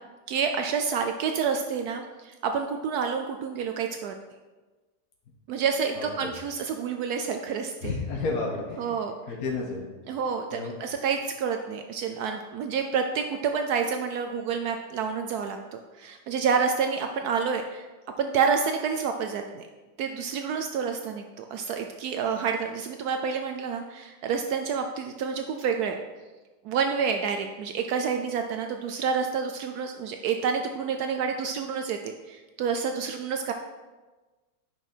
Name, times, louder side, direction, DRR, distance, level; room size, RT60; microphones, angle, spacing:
voice 1, 0.3-4.1 5.5-7.9 8.8-9.1 10.1-17.9 18.2-19.7 20.0-26.0 26.6-33.5, right 6 dB, 75° right, 5 dB, 1.1 m, -28 dB
voice 2, 6.0-6.3 7.8-9.0 9.3-9.9 10.5-10.7, left 3 dB, 65° left, -1 dB, 1.5 m, -31 dB
9.0 x 6.0 x 4.4 m, 1.3 s
omnidirectional pair, 1.7 m